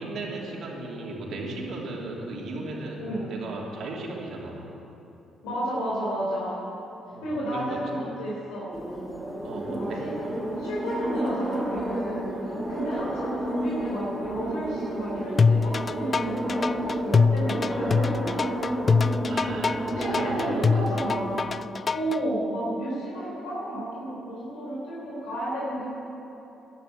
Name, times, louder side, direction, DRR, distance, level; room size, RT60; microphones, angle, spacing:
voice 1, 0.0-3.0 3.3-4.7 7.1-7.8 9.4-10.1 19.2-20.8, right 2 dB, 70° right, -2 dB, 3.1 m, -36 dB
voice 2, 3.0-3.3 5.4-6.6 7.2-8.7 9.6-10.1 10.6-18.3 19.9-21.6 21.9-25.9, right 1 dB, 90° left, -6 dB, 3.8 m, -32 dB
sound 1, 8.7-21.4, right 1 dB, 15° right, 2.9 m, -31 dB
sound 2, 15.4-22.2, left 5 dB, 40° left, 0.3 m, -23 dB
12.0 x 11.0 x 9.0 m, 3.0 s
supercardioid pair, 60°, 0 cm